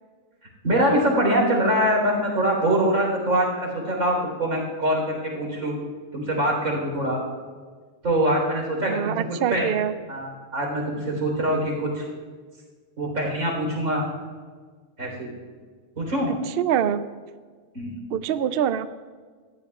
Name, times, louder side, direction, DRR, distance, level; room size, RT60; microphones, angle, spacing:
voice 1, 0.6-5.8 6.1-7.2 8.0-9.1 9.5-9.7 10.1-12.1 13.0-14.0 15.0-15.3 16.0-16.3 17.7-18.0, right 1 dB, 90° right, -1 dB, 4.3 m, -23 dB
voice 2, 8.9-9.9 16.5-17.0 18.1-18.9, right 9 dB, 65° right, 12 dB, 0.6 m, -24 dB
18.5 x 14.5 x 2.4 m, 1.5 s
omnidirectional pair, 1.4 m